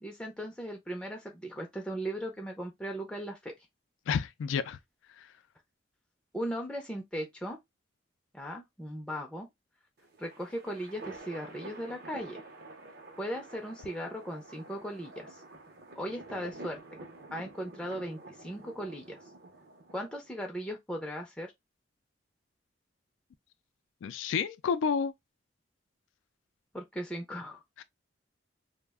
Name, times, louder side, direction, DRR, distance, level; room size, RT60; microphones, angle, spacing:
voice 1, 0.0-3.5 6.3-7.6 8.3-9.5 10.2-12.4 13.2-15.4 16.0-16.8 17.3-19.2 19.9-21.5 26.7-27.6, equal, 5° left, 0.4 m, -38 dB
voice 2, 4.1-4.8 5.2-5.3 24.0-25.1 27.8-27.9, left 6 dB, 90° left, 0.3 m, -30 dB
sound 1, 10.0-20.4, right 2 dB, 55° right, 0.6 m, -49 dB
2.3 x 2.1 x 3.4 m
head